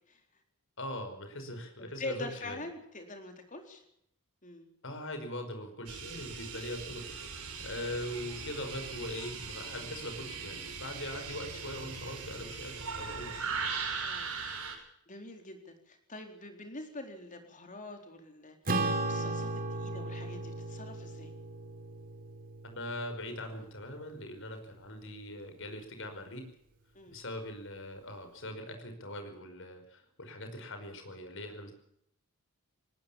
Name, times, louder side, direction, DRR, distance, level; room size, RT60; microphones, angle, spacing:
voice 1, 0.8-2.6 4.8-13.3 22.6-26.5 27.1-31.7, left 1 dB, 60° left, 7 dB, 5.2 m, -41 dB
voice 2, 2.0-3.8 4.4-4.7 14.0-14.4 15.1-18.6 19.0-21.3 26.9-27.2, left 2 dB, 35° left, 5 dB, 4.1 m, -44 dB
sound 1, 5.9-14.7, right 5 dB, 85° right, 6.7 m, -39 dB
Acoustic guitar / Strum, 18.7-23.4, right 2 dB, 40° right, 3.3 m, -35 dB
19.5 x 19.0 x 7.3 m, 0.74 s
head